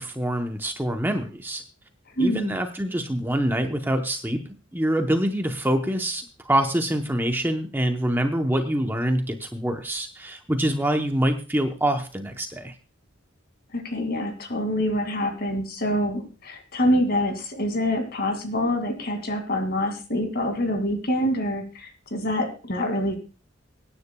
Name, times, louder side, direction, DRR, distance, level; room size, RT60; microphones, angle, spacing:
voice 1, 0.0-1.6 2.2-4.4 4.7-12.7, right 1 dB, 10° right, 5 dB, 0.8 m, -25 dB
voice 2, 2.2-2.6 13.7-23.1, left 1 dB, 50° left, 5 dB, 2.3 m, -26 dB
24.5 x 9.8 x 2.3 m, 0.34 s
head